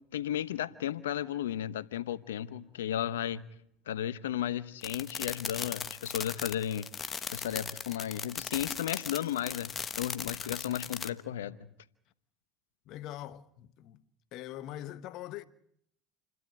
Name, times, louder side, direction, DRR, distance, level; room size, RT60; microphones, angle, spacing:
voice 1, 0.1-3.4 3.9-6.9 7.3-11.6, left 11 dB, 85° left, 0.9 m, -34 dB
sound 1, 4.8-11.1, left 6 dB, 35° left, 1.2 m, -38 dB
voice 2, 12.9-14.0 14.3-15.4, left 13 dB, 60° left, 1.3 m, -42 dB
28.5 x 12.5 x 9.6 m
hypercardioid pair, 80°, 0 cm